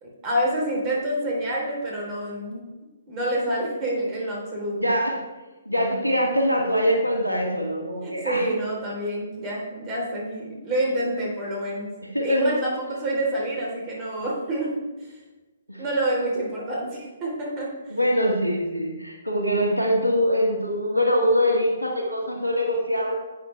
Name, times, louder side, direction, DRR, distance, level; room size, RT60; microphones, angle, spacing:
voice 1, 0.0-2.6 3.1-4.9 8.0-11.9 12.2-14.7 15.0-15.2 15.8-18.0, right 1 dB, 25° right, -3 dB, 3.4 m, -27 dB
voice 2, 4.8-5.2 5.7-8.5 12.1-12.5 15.7-15.8 17.9-23.1, equal, 85° right, 0 dB, 1.7 m, -23 dB
11.0 x 8.6 x 3.3 m, 1.2 s
figure-of-eight pair, 125°, 0 cm